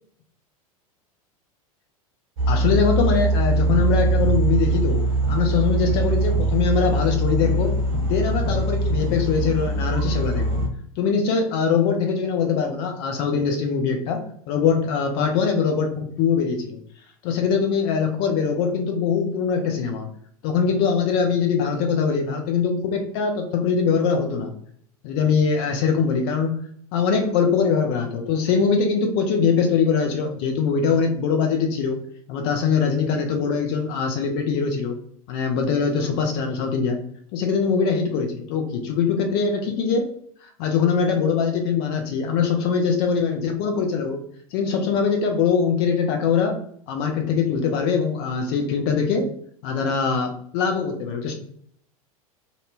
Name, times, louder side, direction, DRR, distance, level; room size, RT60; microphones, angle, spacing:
sound 1, 2.4-10.7, right 2 dB, 50° right, 0.8 m, -22 dB
voice 1, 2.5-10.6 11.0-16.8 17.2-20.1 20.4-24.5 25.0-26.6 26.9-32.0 32.3-35.0 35.3-37.0 37.3-40.1 40.4-44.2 44.5-46.6 46.9-49.3 49.6-51.3, left 5 dB, 40° left, 4 dB, 0.5 m, -22 dB
2.6 x 2.1 x 2.7 m, 0.63 s
figure-of-eight pair, 85°, 19 cm